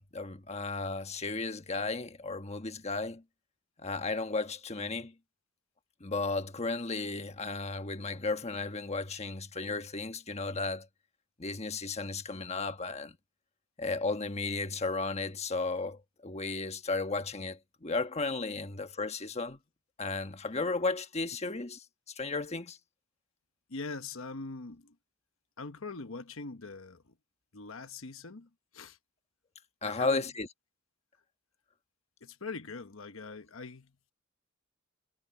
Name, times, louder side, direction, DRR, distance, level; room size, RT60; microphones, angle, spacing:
voice 1, 0.0-3.2 3.8-5.1 6.0-10.9 11.4-13.2 13.8-19.6 20.0-22.8 29.8-30.5, left 3 dB, 30° left, 1.2 m, -34 dB
voice 2, 23.7-25.0 25.6-27.1 27.5-29.0 29.8-30.3 32.2-33.9, left 3 dB, 75° left, 1.1 m, -42 dB
head